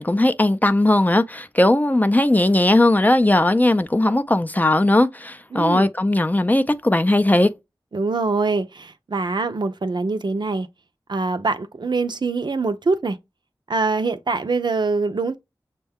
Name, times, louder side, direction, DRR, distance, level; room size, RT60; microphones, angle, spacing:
voice 1, 0.0-7.5, left 1 dB, 20° left, 0.4 m, -18 dB
voice 2, 5.5-5.9 7.9-10.7 11.1-13.2 13.7-15.3, right 3 dB, 65° right, 0.5 m, -24 dB
6.2 x 2.2 x 3.5 m
wide cardioid pair, 45°, 8 cm